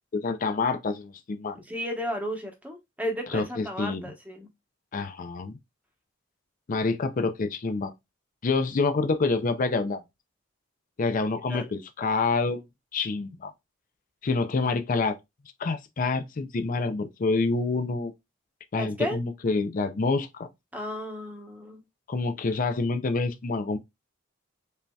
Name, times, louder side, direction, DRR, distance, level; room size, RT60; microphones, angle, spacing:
voice 1, 0.1-1.6 3.3-4.1 4.9-5.6 6.7-7.9 8.4-10.0 11.0-12.6 12.9-13.5 14.2-15.2 15.6-18.1 18.7-20.5 22.1-23.8, left 3 dB, 45° left, 0.4 m, -27 dB
voice 2, 1.6-4.5 11.5-11.7 18.7-19.2 20.7-21.8, equal, 10° right, 1.0 m, -33 dB
5.3 x 2.7 x 2.2 m
head